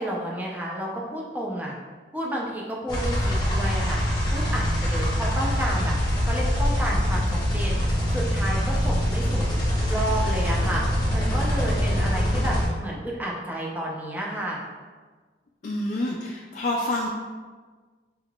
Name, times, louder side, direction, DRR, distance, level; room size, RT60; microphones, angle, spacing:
voice 1, 0.0-1.7 2.1-4.0 4.3-6.0 6.2-9.6 9.9-14.6, right 1 dB, 10° right, -3 dB, 0.5 m, -31 dB
sound 1, 2.9-12.7, equal, 25° left, 0.9 m, -24 dB
voice 2, 15.6-17.1, left 1 dB, 45° left, -2 dB, 0.3 m, -27 dB
4.5 x 3.6 x 2.3 m, 1.4 s
head